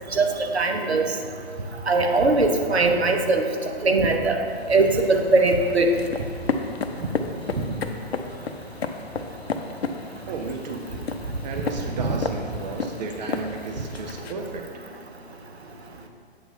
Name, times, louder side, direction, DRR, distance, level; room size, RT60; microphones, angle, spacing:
voice 1, 0.5-1.1 1.9-3.4 3.8-4.4 4.7-5.9 12.0-12.2, right 3 dB, 80° right, 4 dB, 0.8 m, -20 dB
sound 1, 4.5-14.3, left 4 dB, 75° left, 0.6 m, -33 dB
voice 2, 10.3-10.9 11.4-14.7, right 4 dB, 45° right, 3 dB, 0.6 m, -33 dB
7.9 x 3.0 x 5.3 m, 2.2 s
figure-of-eight pair, 125°, 32 cm